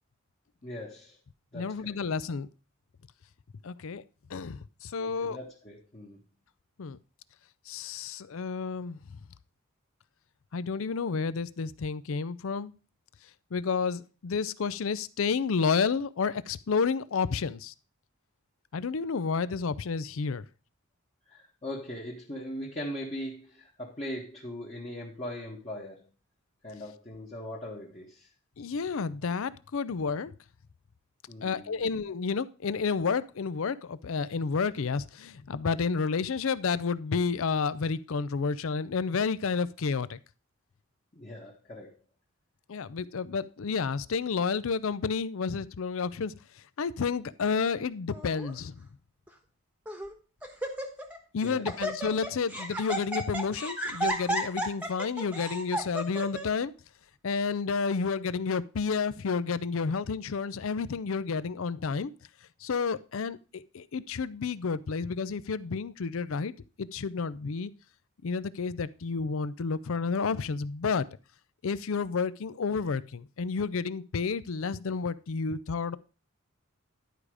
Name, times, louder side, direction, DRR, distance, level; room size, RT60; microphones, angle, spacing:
voice 1, 0.6-1.2 1.5-2.0 5.0-6.2 21.3-26.1 26.6-28.3 31.3-31.8 41.1-41.9 51.4-51.7, left 1 dB, 30° left, 1.4 m, -40 dB
voice 2, 1.5-2.5 3.6-4.0 4.3-5.4 6.8-7.0 7.7-9.0 10.5-12.8 13.5-17.7 18.7-20.4 28.6-30.3 31.4-40.2 42.7-46.3 46.8-48.7 51.3-56.7 57.2-62.1 62.6-66.5 66.8-67.7 68.2-71.1 71.6-76.0, left 5 dB, 70° left, 0.5 m, -30 dB
Laughter, 48.1-48.5 49.3-49.4 49.9-50.1 50.4-51.2 51.4-56.4, right 1 dB, 5° right, 1.1 m, -33 dB
11.0 x 5.0 x 4.8 m
head